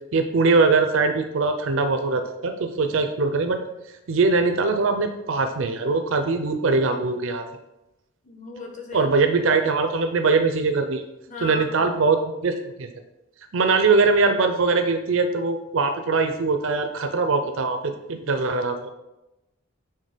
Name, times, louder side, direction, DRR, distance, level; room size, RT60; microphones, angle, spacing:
voice 1, 0.1-3.6 4.1-7.4 8.9-11.0 11.4-12.9 13.5-18.9, right 4 dB, 70° right, 6 dB, 0.5 m, -22 dB
voice 2, 8.2-9.1 11.3-11.9, left 3 dB, 35° left, 2 dB, 0.9 m, -37 dB
6.5 x 3.6 x 4.9 m, 0.97 s
head